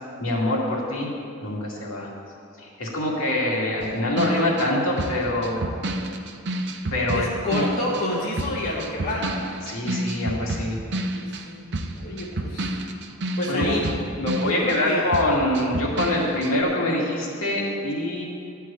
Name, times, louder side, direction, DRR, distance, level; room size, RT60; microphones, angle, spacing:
voice 1, 0.2-1.1 1.4-2.1 2.6-5.6 6.9-7.7 9.6-11.0 13.5-13.8 14.1-18.2, left 1 dB, 80° left, -4 dB, 2.4 m, -25 dB
sound 1, 3.8-8.1 8.4-14.9 15.1-16.6, right 1 dB, 55° right, 0.7 m, -30 dB
voice 2, 7.1-9.4 11.1-11.6 11.9-12.7 13.3-14.1 14.4-15.0, left 1 dB, 45° left, -6 dB, 1.4 m, -29 dB
12.5 x 4.7 x 8.5 m, 2.5 s
head